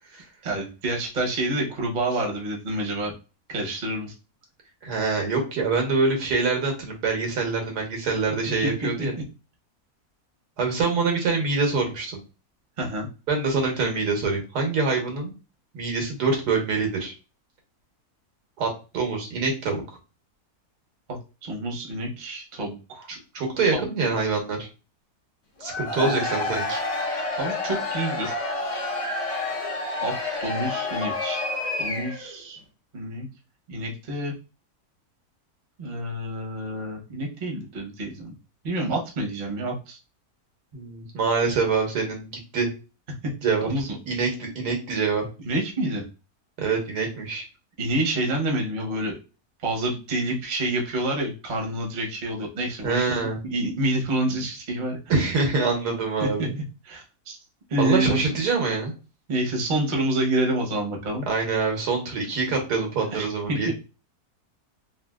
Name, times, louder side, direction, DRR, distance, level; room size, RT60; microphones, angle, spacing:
voice 1, 0.4-3.1 3.5-4.1 8.6-8.7 12.8-13.1 21.4-23.1 23.7-23.9 26.0-26.2 27.4-28.3 30.0-30.1 30.4-31.5 31.8-32.6 32.9-33.3 33.7-34.3 35.8-38.3 38.6-40.0 43.6-43.9 45.4-46.0 47.8-49.1 49.6-53.0 53.5-55.0 56.2-56.5 56.8-57.4 57.7-58.4 59.3-61.3 63.1-63.6, right 1 dB, 40° right, 0 dB, 0.8 m, -28 dB
voice 2, 4.8-9.1 10.6-12.2 13.3-15.3 15.7-17.1 18.6-18.7 18.9-19.8 23.1-24.7 25.6-26.8 40.7-42.7 43.4-43.7 44.1-45.3 46.6-47.5 52.8-53.4 55.1-56.6 57.8-58.9 61.3-63.7, right 4 dB, 90° right, 2 dB, 1.5 m, -25 dB
Cheering / Crowd, 25.6-32.3, left 2 dB, 45° left, 0.4 m, -29 dB
3.2 x 2.7 x 2.2 m, 0.32 s
omnidirectional pair, 1.7 m